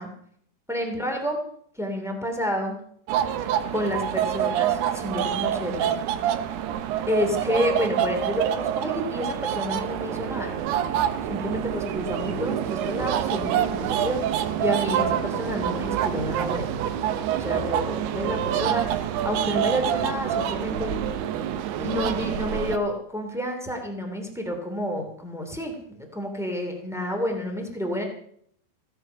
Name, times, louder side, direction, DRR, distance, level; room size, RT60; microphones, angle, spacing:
voice 1, 0.7-1.4 1.7-2.8 3.7-5.9 7.1-10.6 11.3-16.8 17.3-21.1 21.8-28.0, left 1 dB, ahead, 2 dB, 1.0 m, -29 dB
sound 1, 3.1-22.8, right 10 dB, 75° right, 2.5 m, -26 dB
16.5 x 12.0 x 5.7 m, 0.65 s
omnidirectional pair, 5.5 m